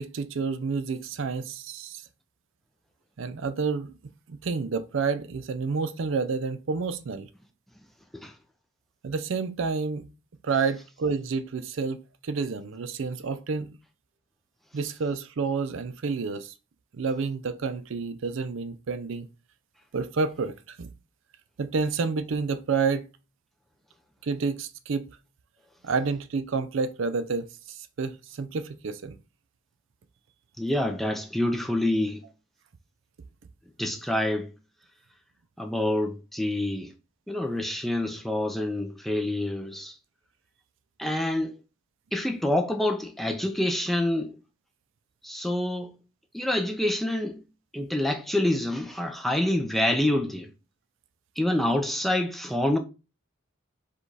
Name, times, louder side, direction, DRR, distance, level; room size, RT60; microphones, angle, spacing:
voice 1, 0.0-2.0 3.2-3.9 4.3-7.3 9.0-10.0 10.4-13.7 14.7-16.5 16.9-19.3 19.9-20.9 21.6-23.1 24.2-25.1 25.8-29.2, right 4 dB, 65° right, 0.4 m, -29 dB
voice 2, 30.6-32.2 33.8-34.5 35.6-36.9 37.3-39.9 41.0-41.6 42.1-44.3 45.2-45.9 46.3-47.4 47.7-50.5 51.4-52.8, left 1 dB, ahead, 0.4 m, -27 dB
4.9 x 2.4 x 4.0 m
head